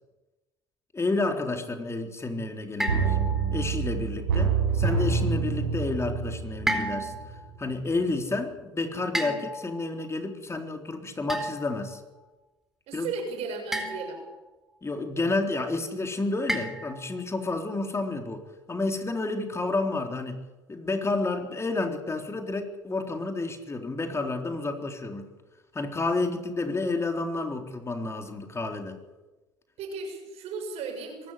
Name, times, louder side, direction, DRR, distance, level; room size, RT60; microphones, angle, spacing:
voice 1, 0.9-3.2 3.5-7.1 7.6-12.0 12.9-13.1 14.8-18.4 18.7-20.4 20.7-25.3 25.7-29.0, left 3 dB, 20° left, 5 dB, 3.8 m, -30 dB
sound 1, 2.8-3.7 6.7-7.4 9.1-9.9 11.3-11.8 13.7-14.3 16.5-17.2, equal, 5° right, 4.4 m, -32 dB
sound 2, 2.9-7.6 7.9-8.0, right 5 dB, 90° right, 5.3 m, -27 dB
voice 2, 12.9-14.2 29.8-31.3, right 4 dB, 60° right, 4 dB, 6.7 m, -35 dB
23.0 x 13.5 x 10.0 m, 1.1 s
hypercardioid pair, 70°, 12 cm